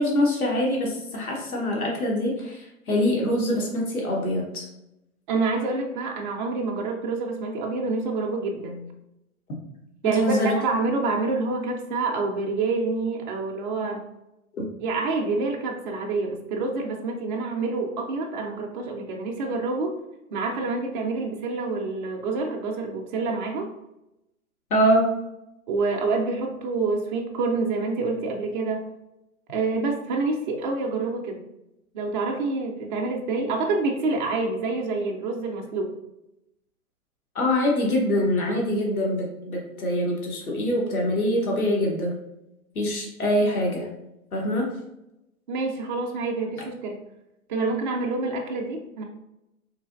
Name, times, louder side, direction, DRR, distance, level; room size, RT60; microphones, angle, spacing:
voice 1, 0.0-4.6 10.0-10.5 24.7-25.1 37.3-42.1 42.7-43.9 44.3-44.8, left 1 dB, 80° left, -1 dB, 1.1 m, -24 dB
voice 2, 5.3-8.9 10.0-14.0 14.8-20.0 20.3-23.7 25.7-28.9 29.5-31.4 31.9-36.0 45.5-47.0 47.5-49.0, right 3 dB, 35° right, 1 dB, 0.4 m, -27 dB
3.2 x 2.7 x 2.4 m, 0.88 s
hypercardioid pair, 120°, 42 cm